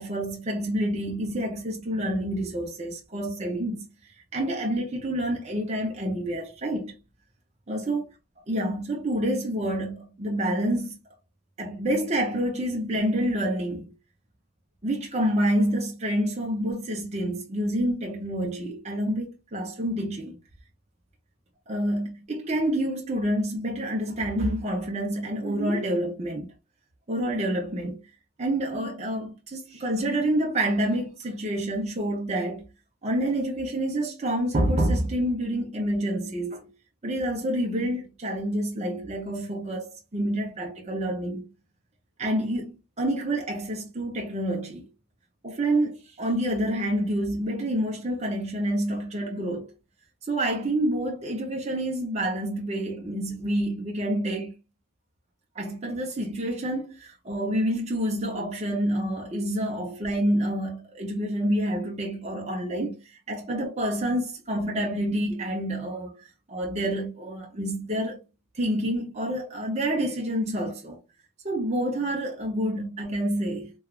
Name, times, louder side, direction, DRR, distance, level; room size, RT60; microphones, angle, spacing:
voice 1, 0.0-3.8 4.3-7.0 7.7-8.0 8.5-11.0 11.6-13.9 14.8-20.3 21.7-26.5 27.1-28.0 28.4-32.6 33.0-36.7 37.0-41.5 42.2-44.9 45.4-49.7 50.3-54.5 55.6-68.2 68.5-71.0 71.4-73.7, right 1 dB, 30° right, 0.6 m, -28 dB
3.1 x 2.3 x 2.3 m
head